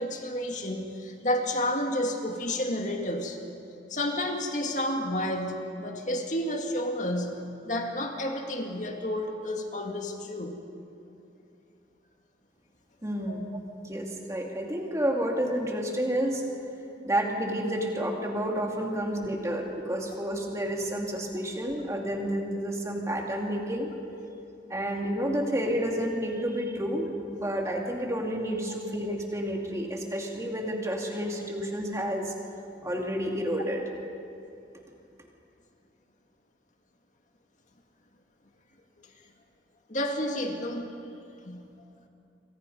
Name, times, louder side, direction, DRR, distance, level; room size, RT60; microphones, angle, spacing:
voice 1, 0.0-3.4 3.9-10.6 13.3-13.4 39.9-40.9 41.4-41.7, left 1 dB, 40° left, 3 dB, 2.0 m, -31 dB
voice 2, 13.0-13.5 13.8-16.4 17.0-23.9 24.7-32.3 32.8-33.8, equal, 15° right, 0 dB, 2.6 m, -30 dB
27.5 x 24.0 x 5.5 m, 2.6 s
head